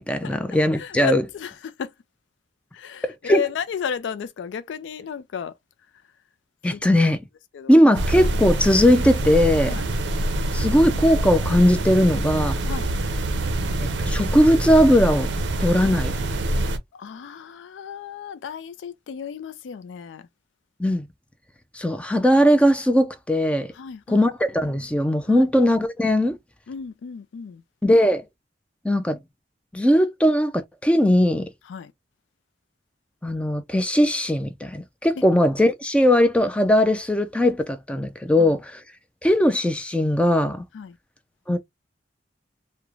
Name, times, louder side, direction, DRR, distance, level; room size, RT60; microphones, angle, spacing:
voice 1, 0.0-1.2 3.0-3.4 6.6-7.2 7.7-9.8 10.5-12.6 13.8-15.3 15.6-16.1 20.8-21.0 21.7-23.7 24.1-26.4 27.8-28.2 28.8-29.2 29.7-31.5 33.2-38.8 39.2-40.6 41.5-41.6, equal, 5° left, 0.3 m, -19 dB
voice 2, 0.7-1.9 2.7-5.5 6.7-6.9 7.5-7.7 9.7-9.9 12.0-12.1 12.7-12.9 16.9-20.3 23.7-24.3 25.3-25.5 26.7-27.6 31.6-31.9 35.2-35.3 38.4-38.6 40.7-41.0, left 7 dB, 90° left, 0.3 m, -33 dB
sound 1, 7.9-16.8, right 1 dB, 75° right, 0.5 m, -25 dB
3.0 x 2.1 x 2.3 m
head